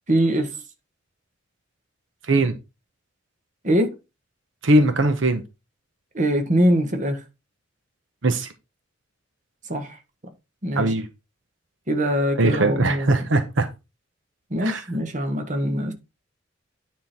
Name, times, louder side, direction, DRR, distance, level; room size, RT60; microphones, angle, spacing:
voice 1, 0.1-0.5 3.6-4.0 6.1-7.2 9.7-10.0 10.6-10.9 11.9-13.3 14.5-15.9, equal, 40° right, 1.3 m, -23 dB
voice 2, 4.6-5.4 8.2-8.5 10.8-11.1 12.4-13.7 14.6-14.8, right 2 dB, 80° right, 0.9 m, -20 dB
9.5 x 3.8 x 4.3 m
head